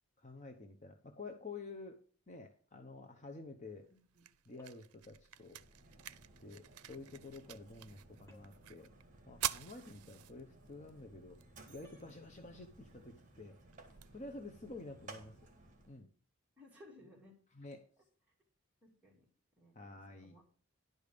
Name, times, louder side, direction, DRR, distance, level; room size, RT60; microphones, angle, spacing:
voice 1, 0.2-2.0 2.3-3.9 4.5-5.6 6.4-8.9 9.3-13.6 14.1-15.5 15.9-16.1 17.5-17.9 19.7-20.3, left 3 dB, 30° left, 4 dB, 0.8 m, -50 dB
sound 1, 3.6-15.6, right 13 dB, 90° right, 0.5 m, -49 dB
voice 2, 3.9-4.2 12.5-12.7 16.6-17.3 18.8-19.2 19.6-20.4, left 1 dB, 5° right, -3 dB, 2.9 m, -60 dB
sound 2, 4.6-5.1 8.3-8.7 11.8-12.2, equal, 15° left, 1.5 m, -65 dB
Mechanisms, 5.3-16.0, right 2 dB, 35° right, 1.8 m, -59 dB
11.0 x 5.2 x 6.6 m, 0.42 s
head